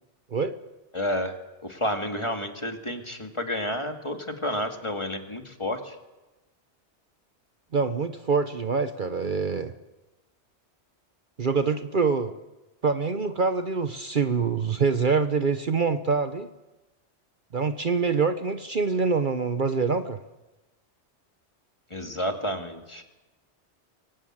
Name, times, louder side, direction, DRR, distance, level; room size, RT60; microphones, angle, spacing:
voice 1, 0.9-1.4 1.6-6.0 21.9-23.0, left 1 dB, 25° left, 5 dB, 2.2 m, -30 dB
voice 2, 7.7-9.7 11.4-12.4 12.8-16.5 17.5-20.2, right 5 dB, 50° right, 9 dB, 1.0 m, -25 dB
24.0 x 18.5 x 8.8 m, 1.1 s
omnidirectional pair, 1.2 m